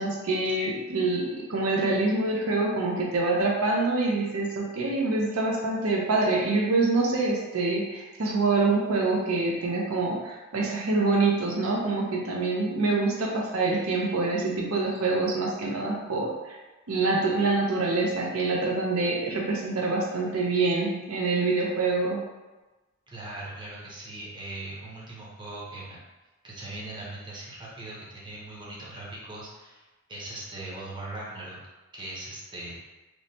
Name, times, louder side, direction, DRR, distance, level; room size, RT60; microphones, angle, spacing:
voice 1, 0.0-16.6 16.9-22.2, right 3 dB, 85° right, -2 dB, 0.5 m, -26 dB
voice 2, 23.1-26.0 26.4-29.8 30.1-31.6 31.9-32.8, right 2 dB, 20° right, -6 dB, 0.6 m, -40 dB
3.0 x 2.1 x 2.6 m, 1.1 s
head